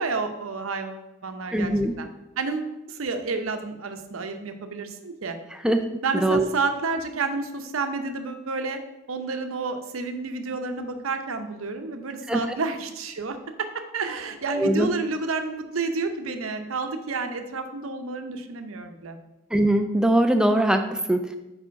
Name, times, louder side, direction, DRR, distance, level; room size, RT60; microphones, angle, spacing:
voice 1, 0.0-1.7 2.0-2.1 2.4-5.4 6.0-8.8 9.1-19.2, right 4 dB, 80° right, 7 dB, 0.7 m, -30 dB
voice 2, 1.5-2.0 5.6-5.8 6.1-6.5 12.3-12.6 14.5-14.9 19.5-21.3, right 1 dB, 5° right, 7 dB, 0.3 m, -22 dB
5.0 x 4.9 x 5.7 m, 0.98 s
head